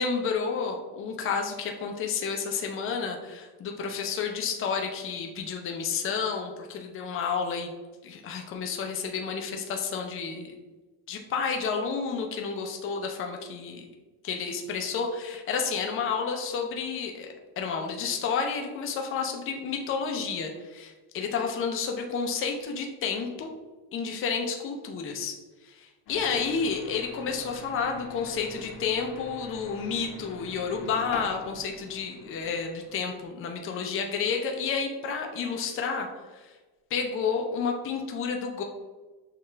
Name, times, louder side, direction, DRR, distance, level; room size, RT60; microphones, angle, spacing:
voice 1, 0.0-7.7 8.0-10.6 11.1-13.9 14.2-17.3 17.6-23.5 23.9-25.4 25.6-36.1 36.3-36.5 36.9-38.6, left 5 dB, 30° left, 3 dB, 0.5 m, -30 dB
sound 1, 26.1-33.3, left 3 dB, 75° left, 1.1 m, -45 dB
6.5 x 2.4 x 3.2 m, 1.2 s
cardioid pair, 165°, 41 cm